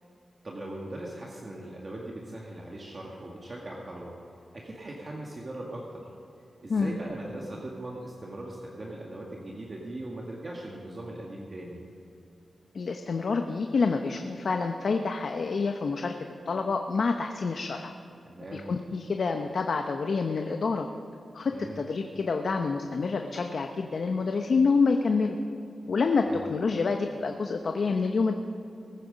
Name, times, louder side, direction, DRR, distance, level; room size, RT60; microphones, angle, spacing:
voice 1, 0.4-4.1 4.5-6.0 6.6-11.8 18.3-18.7 21.5-21.8 26.2-26.4, right 1 dB, 40° right, -2 dB, 1.9 m, -40 dB
voice 2, 12.7-16.1 16.5-17.9 18.5-20.9 21.3-25.4 25.9-28.4, left 4 dB, 65° left, 5 dB, 0.8 m, -27 dB
20.5 x 9.4 x 5.2 m, 2.9 s
wide cardioid pair, 85°, 0 cm